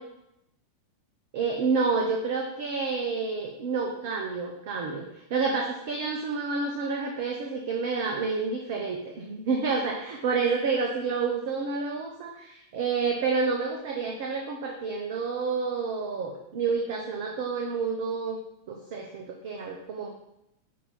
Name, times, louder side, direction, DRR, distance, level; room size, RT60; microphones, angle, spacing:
voice 1, 1.3-5.0 5.3-18.4 18.7-20.1, right 4 dB, 50° right, 1 dB, 0.8 m, -29 dB
8.5 x 2.9 x 5.3 m, 0.85 s
figure-of-eight pair, 90°, 0 cm